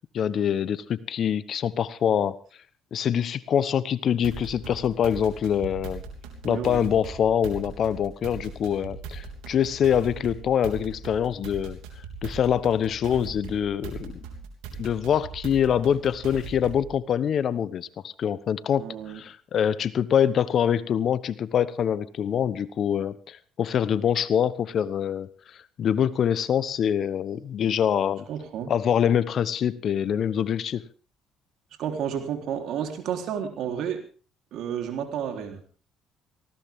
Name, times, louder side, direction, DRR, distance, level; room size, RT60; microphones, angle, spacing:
voice 1, 0.1-2.4 2.9-6.0 6.4-11.8 12.2-14.2 14.8-18.8 19.1-25.3 25.8-28.3 28.7-30.8, left 9 dB, 55° left, 16 dB, 1.1 m, -25 dB
sound 1, 4.2-16.9, right 5 dB, 85° right, 3.3 m, -40 dB
voice 2, 6.4-6.9 18.8-19.2 28.3-28.7 31.8-34.0 34.5-35.6, right 8 dB, 70° right, 4 dB, 3.7 m, -31 dB
19.0 x 16.5 x 3.7 m, 0.39 s
supercardioid pair, 80°, 0 cm